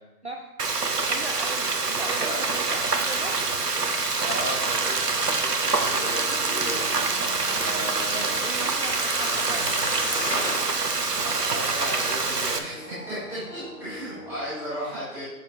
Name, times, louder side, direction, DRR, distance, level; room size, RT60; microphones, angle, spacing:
voice 1, 0.2-0.7 1.0-3.4 8.1-10.0 14.0-14.1 14.7-15.0, right 2 dB, 50° right, 2 dB, 0.4 m, -39 dB
Frying (food), 0.6-12.6, right 4 dB, 90° right, 1.0 m, -26 dB
voice 2, 2.0-2.5 4.2-7.1 7.5-8.3 11.2-15.2, equal, ahead, -20 dB, 1.8 m, -35 dB
sound 1, 3.7-14.5, left 3 dB, 70° left, 1.5 m, -45 dB
sound 2, 7.1-10.7 11.3-11.4, left 1 dB, 35° left, 1.6 m, -35 dB
7.1 x 6.5 x 3.3 m, 1.0 s
figure-of-eight pair, 165°, 46 cm